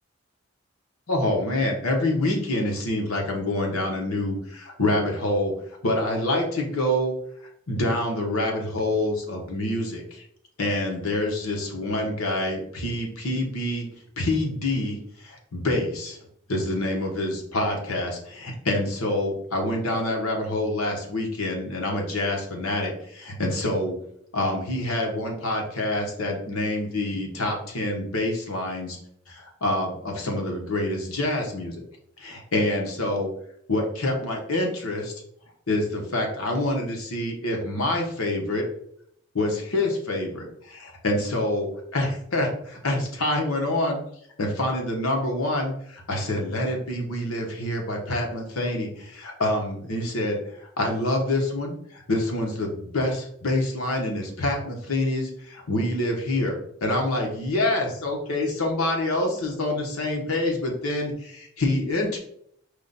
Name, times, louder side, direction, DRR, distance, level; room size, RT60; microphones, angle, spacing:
voice 1, 1.1-5.5 5.8-7.1 7.7-10.2 10.6-13.9 14.2-16.2 16.5-24.0 24.3-29.0 29.3-31.8 32.2-33.3 33.7-35.1 35.7-38.6 39.3-41.7 41.9-44.0 44.4-62.2, left 1 dB, 90° left, 1 dB, 1.2 m, -26 dB
5.0 x 2.4 x 4.0 m, 0.69 s
head